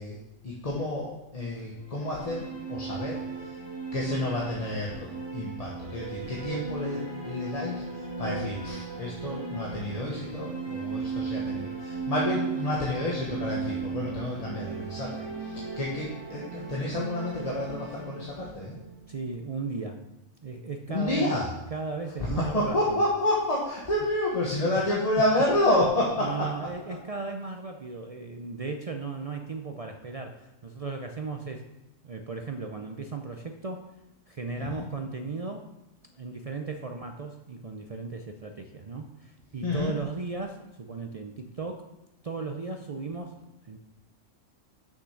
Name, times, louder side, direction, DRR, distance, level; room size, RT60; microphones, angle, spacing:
voice 1, 0.0-3.6 3.9-18.8 20.9-21.5 22.2-26.5 34.6-34.8 39.6-39.9, left 1 dB, 30° left, -3 dB, 1.1 m, -29 dB
sound 1, 1.8-19.7, right 4 dB, 20° right, 1.4 m, -36 dB
voice 2, 19.1-20.0 20.4-21.3 21.7-23.1 24.7-24.8 26.2-31.7 32.0-33.9 34.3-35.7 36.1-41.9 42.2-43.8, right 4 dB, 60° right, 4 dB, 0.3 m, -36 dB
6.5 x 6.2 x 5.7 m, 0.96 s
omnidirectional pair, 1.4 m